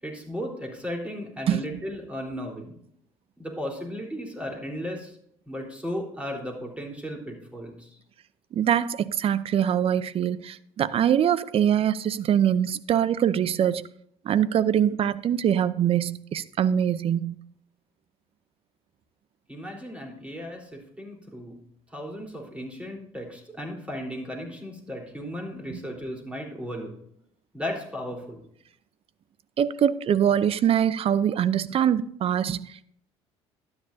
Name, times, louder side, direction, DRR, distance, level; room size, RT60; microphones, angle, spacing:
voice 1, 0.0-2.7 3.4-5.1 5.5-7.9 19.5-21.5 21.9-26.9 27.5-28.4, equal, 10° right, 3.7 m, -35 dB
voice 2, 1.5-1.8 8.5-13.8 14.2-17.3 25.7-25.8 29.6-32.8, right 9 dB, 45° right, 0.5 m, -23 dB
12.5 x 9.7 x 2.7 m
hypercardioid pair, 70°, 14 cm